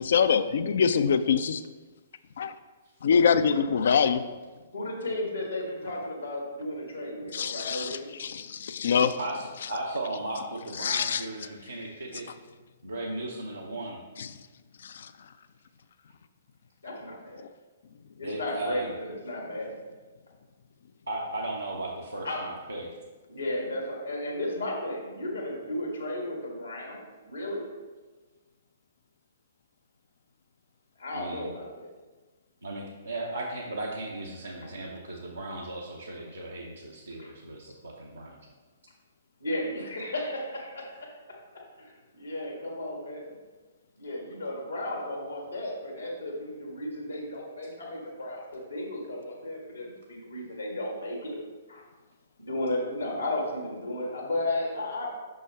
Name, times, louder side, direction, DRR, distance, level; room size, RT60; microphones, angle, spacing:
voice 1, 0.0-1.6 2.4-2.5 3.0-4.2 7.3-9.2 10.8-11.3 14.2-14.4 14.8-15.1, left 6 dB, 55° left, 12 dB, 0.3 m, -24 dB
voice 2, 4.7-8.1 16.8-17.4 18.2-19.8 22.2-22.4 23.3-27.7 31.0-31.9 37.2-37.3 39.4-41.1 41.8-43.3 44.0-51.4 51.7-51.8 52.4-55.1, left 1 dB, 80° left, -1 dB, 1.5 m, -34 dB
voice 3, 9.2-12.3 12.8-14.0 18.2-18.9 21.1-22.9 31.1-31.5 32.6-38.4, right 2 dB, 80° right, -3 dB, 0.8 m, -36 dB
6.1 x 5.5 x 3.4 m, 1.3 s
figure-of-eight pair, 120°, 0 cm